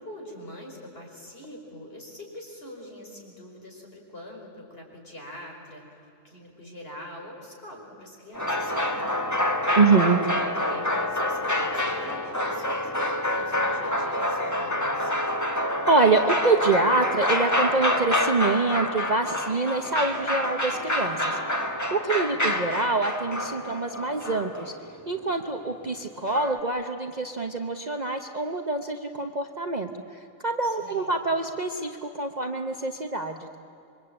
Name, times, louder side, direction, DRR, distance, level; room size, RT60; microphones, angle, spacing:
voice 1, 0.0-5.8 6.2-9.2 9.4-15.1 22.3-22.8 30.6-31.1, equal, 45° left, 0 dB, 5.2 m, -44 dB
sound 1, 8.3-25.0 26.3-26.6, left 1 dB, 10° left, 1.6 m, -27 dB
voice 2, 9.8-10.2 15.9-21.4 21.9-24.7 25.1-33.6, right 3 dB, 35° right, 5 dB, 1.0 m, -25 dB
26.5 x 23.5 x 8.8 m, 2.7 s
omnidirectional pair, 1.4 m